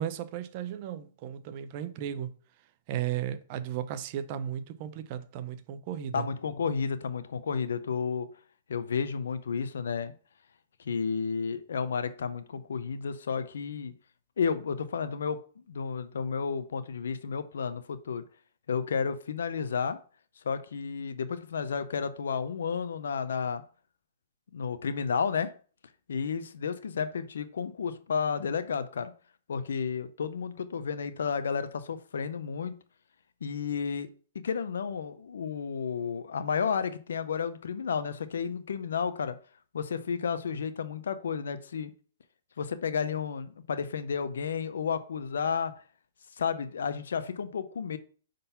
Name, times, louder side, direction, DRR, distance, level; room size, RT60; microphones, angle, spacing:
voice 1, 0.0-2.3 2.9-6.3, right 10 dB, 40° right, 0.6 m, -35 dB
voice 2, 6.1-8.3 8.7-10.1 10.8-13.9 14.4-15.4 15.7-18.2 18.7-20.0 20.4-23.6 24.5-25.5 26.1-29.1 29.5-32.8 33.4-34.1 34.3-39.4 39.7-41.9 42.6-45.7 46.4-48.0, left 6 dB, 80° left, 0.7 m, -32 dB
5.5 x 3.9 x 5.6 m
hypercardioid pair, 145°, 0 cm